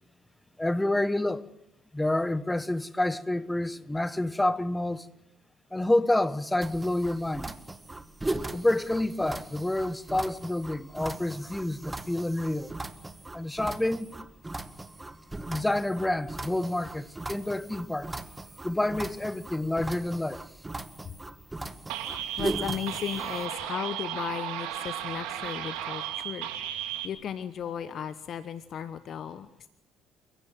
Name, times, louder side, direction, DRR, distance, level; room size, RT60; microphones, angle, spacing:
voice 1, 0.6-1.4 1.9-5.1 5.7-7.5 8.5-12.7 13.3-14.2 15.5-18.2 18.6-20.4, left 1 dB, 10° left, 1.4 m, -28 dB
sound 1, 6.6-23.5, right 2 dB, 15° right, 1.9 m, -39 dB
sound 2, 21.9-27.1, right 11 dB, 70° right, 2.6 m, -35 dB
voice 2, 22.4-26.5 27.0-29.5, left 8 dB, 50° left, 1.1 m, -35 dB
29.5 x 16.5 x 7.6 m
hypercardioid pair, 55°, 0 cm